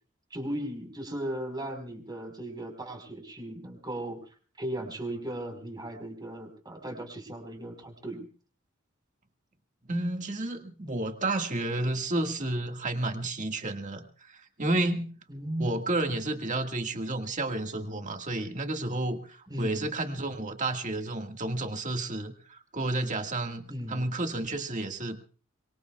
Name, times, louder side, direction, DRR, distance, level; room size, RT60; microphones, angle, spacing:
voice 1, 0.3-4.2 4.6-8.3 15.3-15.7 19.5-19.9 23.7-24.0, right 1 dB, 20° right, 4 dB, 4.7 m, -37 dB
voice 2, 9.9-15.2 15.6-23.6 23.9-25.2, right 2 dB, 40° right, 5 dB, 1.8 m, -31 dB
25.0 x 23.5 x 2.4 m, 0.40 s
head